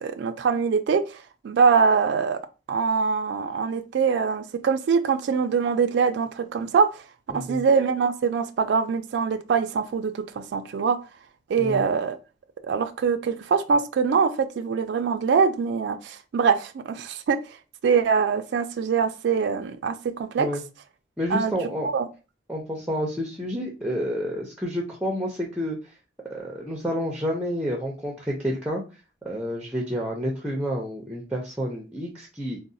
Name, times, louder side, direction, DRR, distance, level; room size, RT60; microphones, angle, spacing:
voice 1, 0.0-2.4 2.7-7.0 7.3-11.0 11.5-12.2 12.6-17.4 17.8-20.5 21.3-21.5 21.8-22.1, right 5 dB, 65° right, 0.3 m, -23 dB
voice 2, 7.3-7.6 11.6-11.8 20.4-20.6 21.2-21.9 22.5-25.8 26.3-28.8 29.2-32.6, equal, 5° right, 0.5 m, -29 dB
3.8 x 2.0 x 2.6 m
head